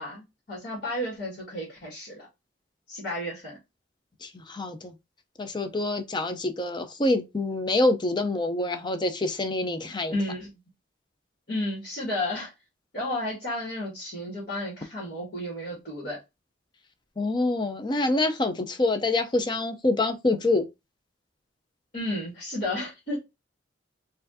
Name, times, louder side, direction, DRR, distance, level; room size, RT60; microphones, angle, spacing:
voice 1, 0.0-2.3 2.9-3.6 10.1-10.5 11.5-12.5 12.9-16.2 21.9-23.2, left 1 dB, 50° left, 1.7 m, -32 dB
voice 2, 4.2-4.9 5.4-10.2 17.2-20.7, left 2 dB, 25° left, 0.5 m, -26 dB
4.3 x 2.6 x 2.7 m
head